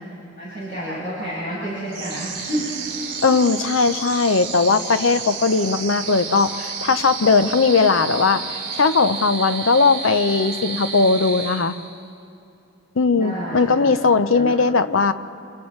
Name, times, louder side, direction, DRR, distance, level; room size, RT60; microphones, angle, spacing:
voice 1, 0.4-2.7 13.1-14.0 14.3-14.5, right 1 dB, 40° left, -10 dB, 7.2 m, -29 dB
sound 1, 1.9-12.1, right 5 dB, 45° right, 2.7 m, -31 dB
voice 2, 3.2-8.4 8.7-11.7 13.0-15.1, left 4 dB, 75° left, 11 dB, 0.7 m, -18 dB
30.0 x 28.5 x 3.2 m, 2.6 s
head